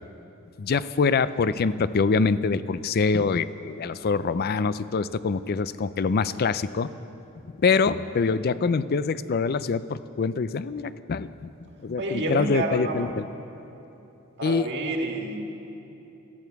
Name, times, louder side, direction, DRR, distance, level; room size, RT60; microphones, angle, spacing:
voice 1, 0.6-6.9 7.6-11.5 11.8-13.2 14.4-14.7, left 4 dB, 45° left, 15 dB, 0.4 m, -25 dB
voice 2, 12.0-13.1 14.4-15.4, right 2 dB, 55° right, 2 dB, 1.7 m, -29 dB
17.5 x 13.5 x 4.7 m, 3.0 s
head